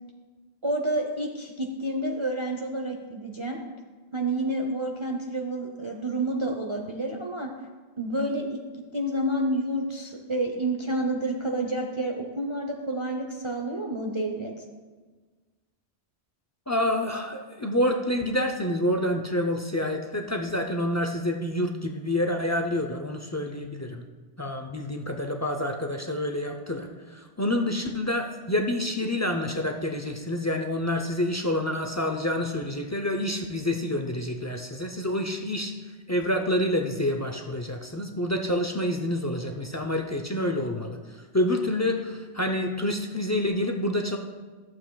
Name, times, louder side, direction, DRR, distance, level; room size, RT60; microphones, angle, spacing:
voice 1, 0.6-3.6 4.1-7.5 8.0-8.6 8.9-14.5, right 1 dB, 30° right, 1 dB, 0.6 m, -29 dB
voice 2, 16.7-24.0 24.4-35.7 36.1-41.0 41.3-44.2, left 1 dB, 30° left, 3 dB, 0.3 m, -28 dB
14.0 x 7.5 x 2.3 m, 1.4 s
omnidirectional pair, 1.1 m